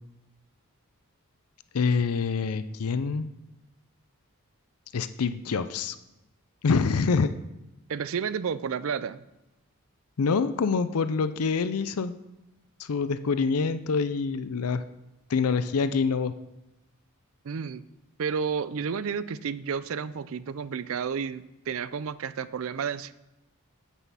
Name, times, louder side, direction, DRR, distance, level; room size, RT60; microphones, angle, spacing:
voice 1, 1.7-3.3 4.9-6.0 6.6-7.3 10.2-12.1 12.8-14.8 15.3-16.3, left 5 dB, 80° left, 12 dB, 0.5 m, -26 dB
voice 2, 7.9-9.2 17.4-17.8 18.2-23.1, right 6 dB, 65° right, 16 dB, 0.4 m, -31 dB
9.2 x 8.2 x 5.5 m, 0.94 s
head